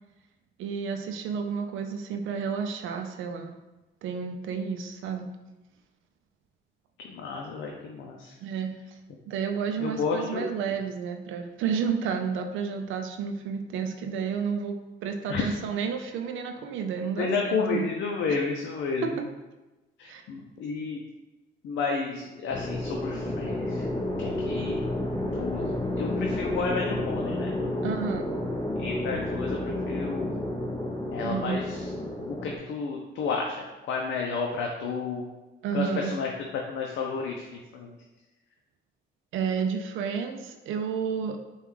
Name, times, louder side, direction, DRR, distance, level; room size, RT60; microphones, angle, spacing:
voice 1, 0.6-3.5 4.0-5.3 8.4-8.7 9.3-17.9 19.0-19.2 20.1-20.2 27.8-28.3 31.2-31.7 35.6-36.1 39.3-41.4, right 6 dB, 80° right, 5 dB, 0.5 m, -31 dB
voice 2, 7.0-8.3 9.8-10.5 15.3-15.5 17.2-19.2 20.0-21.0 21.6-23.8 24.2-24.8 25.3-25.7 26.0-27.5 28.8-30.3 31.1-31.9 32.3-35.2 35.7-37.5 37.7-37.9, left 4 dB, 70° left, 0 dB, 0.5 m, -31 dB
sound 1, 22.5-32.6, left 1 dB, 20° left, 0.7 m, -31 dB
5.2 x 2.4 x 3.2 m, 1.1 s
cardioid pair, 90°, 20 cm